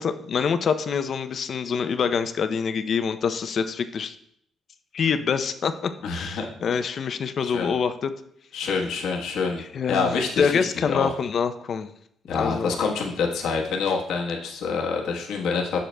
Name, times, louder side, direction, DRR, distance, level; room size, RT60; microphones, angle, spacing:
voice 1, 0.0-4.1 4.9-8.1 9.6-11.9 12.3-12.7, left 6 dB, 55° left, 10 dB, 0.5 m, -26 dB
voice 2, 6.0-6.5 7.4-7.7 8.5-9.6 9.9-11.1 12.3-15.8, left 5 dB, 80° left, 0 dB, 1.1 m, -26 dB
7.7 x 6.7 x 2.2 m, 0.70 s
cardioid pair, 90°, 0 cm